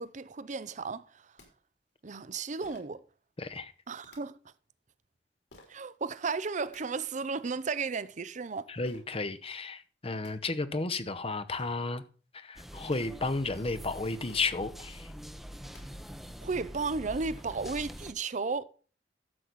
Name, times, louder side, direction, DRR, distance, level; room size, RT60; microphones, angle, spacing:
voice 1, 0.0-1.3 2.0-3.0 3.9-4.4 5.7-8.7 16.4-18.6, right 4 dB, 45° right, 0.6 m, -34 dB
sound 1, 1.1-1.2 1.4-1.5 2.6-3.0 4.0-4.2 5.5-5.8 6.4-6.8 8.8-9.0 9.8-9.9 10.1-10.3 11.2-11.3 11.5-11.8 12.6-13.0 14.3-14.6 15.6-15.8 16.5-16.6 17.0-17.9, left 2 dB, 70° left, 3.8 m, -55 dB
voice 2, 3.4-3.7 8.7-12.0 12.3-15.1, left 3 dB, 35° left, 0.9 m, -33 dB
sound 2, 12.5-18.1, equal, ahead, 0.8 m, -45 dB
12.5 x 7.8 x 4.0 m
head